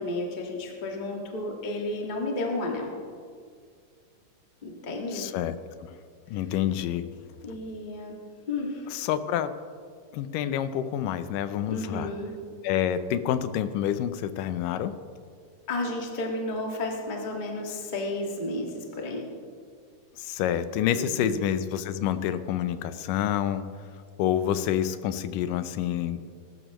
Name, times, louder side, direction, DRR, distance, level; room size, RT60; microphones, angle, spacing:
voice 1, 0.0-2.9 4.6-5.3 6.3-6.4 7.4-8.2 8.5-9.0 11.7-12.3 15.7-19.3 20.9-21.4, left 2 dB, 25° left, 0 dB, 0.9 m, -32 dB
voice 2, 5.1-5.6 5.9-6.0 6.3-7.0 8.9-9.5 10.1-12.1 12.6-15.0 20.2-23.7 24.2-26.2, left 10 dB, 85° left, 12 dB, 2.2 m, -28 dB
21.0 x 12.5 x 3.0 m, 2.1 s
omnidirectional pair, 3.8 m